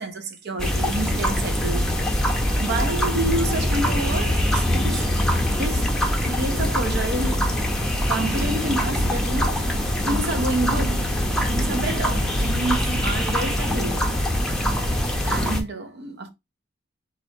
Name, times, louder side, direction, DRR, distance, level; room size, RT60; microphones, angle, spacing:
voice 1, 0.0-1.9 2.6-5.9 6.2-7.6 8.1-9.7 10.0-11.1 11.5-14.1 15.2-16.3, right 2 dB, 55° right, 0.9 m, -29 dB
sound 1, 0.6-15.6, equal, 5° left, 0.8 m, -23 dB
4.8 x 2.6 x 4.2 m
head